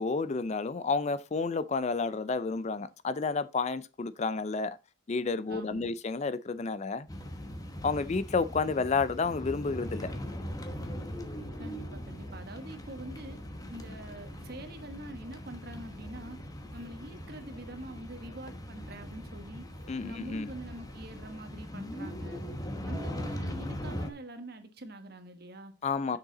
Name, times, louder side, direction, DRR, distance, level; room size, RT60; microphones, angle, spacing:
voice 1, 0.0-4.8 5.1-7.1 7.8-10.1 19.9-20.5 25.8-26.2, left 4 dB, 35° left, 0.4 m, -30 dB
voice 2, 5.5-6.0 11.6-13.4 13.7-16.4 16.7-19.7 20.0-22.4 22.8-25.7 26.1-26.2, right 1 dB, 50° right, 1.3 m, -45 dB
sound 1, 7.1-24.1, equal, 15° left, 1.0 m, -40 dB
sound 2, 9.7-21.9, right 1 dB, 70° right, 1.6 m, -55 dB
7.4 x 6.6 x 4.0 m
head